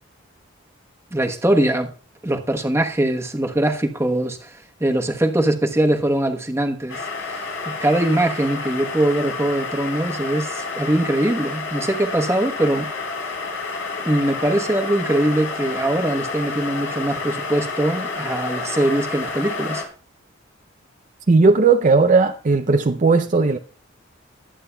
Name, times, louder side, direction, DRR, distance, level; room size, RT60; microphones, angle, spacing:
voice 1, 1.1-1.9 2.2-12.9 14.0-19.8, right 1 dB, 15° right, 1.0 m, -22 dB
sound 1, 6.9-19.8, left 4 dB, 90° left, 3.8 m, -29 dB
voice 2, 21.3-23.6, right 4 dB, 40° right, 0.5 m, -16 dB
21.0 x 8.6 x 2.2 m
head